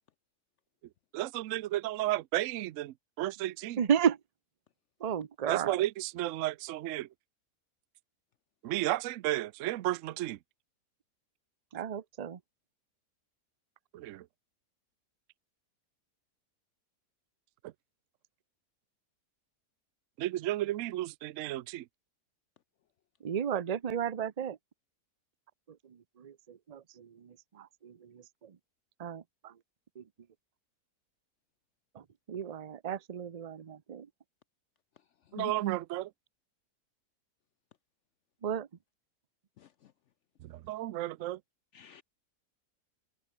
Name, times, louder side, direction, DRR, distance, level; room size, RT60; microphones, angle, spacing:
voice 1, 1.1-3.8 5.5-7.1 8.6-10.4 13.9-14.2 20.2-21.8 35.3-36.1 40.4-41.4, right 15 dB, 65° right, 0.8 m, -33 dB
voice 2, 3.8-4.2 5.0-5.8 11.7-12.4 23.2-24.6 26.2-28.5 29.0-29.5 30.0-30.1 32.0-34.1 38.4-38.7, right 8 dB, 40° right, 0.5 m, -33 dB
voice 3, 39.6-39.9 41.7-42.0, left 12 dB, 70° left, 0.7 m, -47 dB
omnidirectional pair, 1.7 m